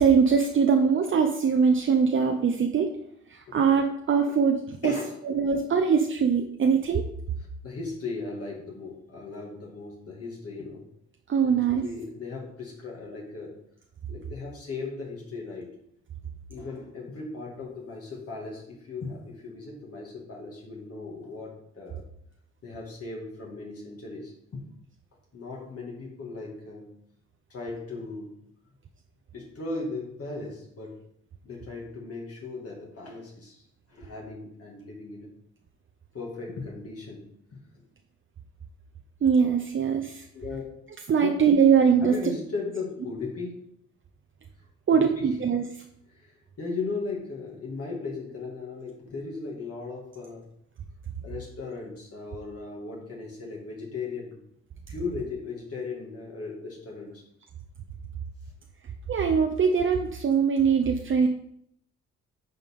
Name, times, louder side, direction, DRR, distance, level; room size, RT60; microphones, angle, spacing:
voice 1, 0.0-2.9 3.3-4.9 5.2-7.0 11.3-11.8 39.2-40.2 41.1-42.2 44.9-45.7 59.1-61.3, right 6 dB, 40° right, 4 dB, 0.7 m, -22 dB
voice 2, 4.8-5.2 7.6-10.9 11.4-13.6 14.1-15.7 16.5-22.0 22.6-24.6 25.3-26.9 27.5-28.3 29.3-30.9 31.4-33.6 33.9-35.3 36.1-37.3 40.3-40.7 41.2-41.3 42.0-43.6 44.9-45.3 46.2-46.3 46.6-50.4 51.2-54.4 54.9-57.2, left 3 dB, 50° left, -2 dB, 2.2 m, -37 dB
9.0 x 4.8 x 3.7 m, 0.71 s
cardioid pair, 90°, 30 cm